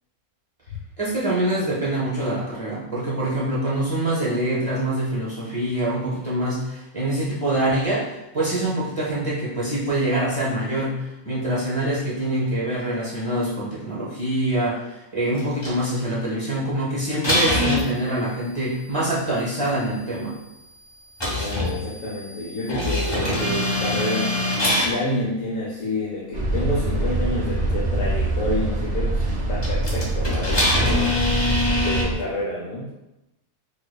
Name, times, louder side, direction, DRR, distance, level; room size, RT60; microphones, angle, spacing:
voice 1, 1.0-20.4, right 1 dB, 35° right, -6 dB, 0.6 m, -25 dB
sound 1, 15.4-15.7 17.2-17.9 21.2-24.9 27.7-27.8 29.6-32.0, left 1 dB, 25° left, 0.6 m, -23 dB
voice 2, 21.3-24.3 24.7-29.2 29.5-31.2 31.8-32.9, left 1 dB, 70° left, -6 dB, 1.1 m, -29 dB
sound 2, 26.3-32.1, right 2 dB, 75° right, 0.3 m, -24 dB
4.8 x 2.3 x 2.2 m, 0.94 s
omnidirectional pair, 1.5 m